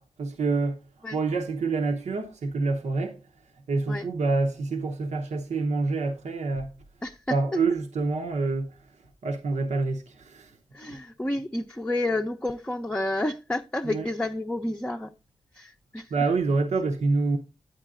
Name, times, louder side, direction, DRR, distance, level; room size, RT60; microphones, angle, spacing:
voice 1, 0.0-3.2 3.7-6.7 7.3-10.6 10.9-11.0 13.8-14.1 16.1-17.4, right 3 dB, 90° right, 0.8 m, -27 dB
voice 2, 7.0-7.4 10.7-15.1 15.5-16.1, left 1 dB, 10° left, 0.5 m, -30 dB
8.9 x 8.9 x 2.4 m
cardioid pair, 50°, 12 cm